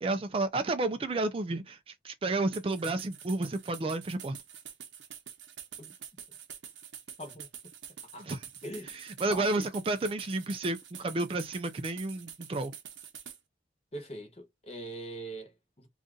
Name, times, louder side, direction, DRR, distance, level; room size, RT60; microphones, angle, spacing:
voice 1, 0.0-4.4 8.2-8.4 8.8-12.7, right 2 dB, 30° right, 0.3 m, -31 dB
sound 1, 2.5-13.4, right 9 dB, 90° right, 0.7 m, -47 dB
voice 2, 8.1-8.9 9.3-9.7 13.9-15.9, right 1 dB, 35° left, 0.9 m, -42 dB
2.6 x 2.4 x 3.6 m
head